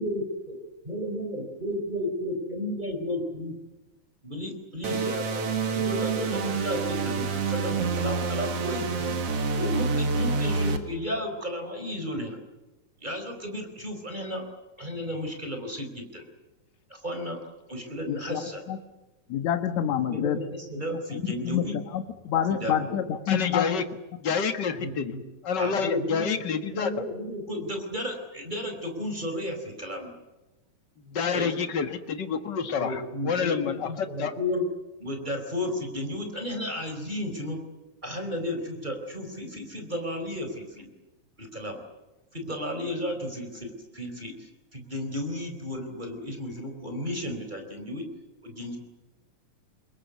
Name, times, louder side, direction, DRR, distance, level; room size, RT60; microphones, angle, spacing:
voice 1, 0.0-0.6 0.8-3.5 4.2-9.2 9.5-12.4 13.0-14.4 14.8-16.3 16.9-17.4 17.7-18.6 20.1-21.7 22.6-23.0 24.8-25.2 25.6-26.4 26.7-30.2 31.3-31.5 32.8-34.6 35.0-37.6 38.0-40.9 41.4-41.8 42.3-44.3 44.7-48.0 48.4-48.8, left 1 dB, 15° right, 5 dB, 4.3 m, -33 dB
sound 1, 4.8-10.8, right 4 dB, 55° right, 2.8 m, -27 dB
voice 2, 18.1-18.4 18.7-18.8 19.3-20.4 20.9-23.7, left 9 dB, 70° left, 8 dB, 2.6 m, -28 dB
voice 3, 23.3-23.8 24.2-25.1 25.4-26.9 31.0-34.3, left 6 dB, 40° left, 8 dB, 1.9 m, -28 dB
25.5 x 21.5 x 8.3 m, 1.0 s
omnidirectional pair, 3.4 m